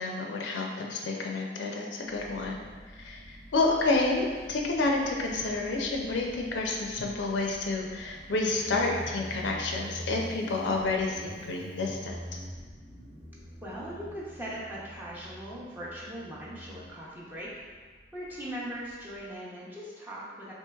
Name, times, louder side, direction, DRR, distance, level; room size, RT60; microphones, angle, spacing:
voice 1, 0.0-2.6 3.0-3.2 3.5-12.2, left 3 dB, 80° left, 0 dB, 0.5 m, -29 dB
Motorcycle, 2.1-19.3, equal, 70° right, 1.0 m, -46 dB
voice 2, 13.6-17.5 18.1-20.5, equal, 10° right, -7 dB, 0.6 m, -40 dB
4.4 x 2.9 x 2.3 m, 1.5 s
head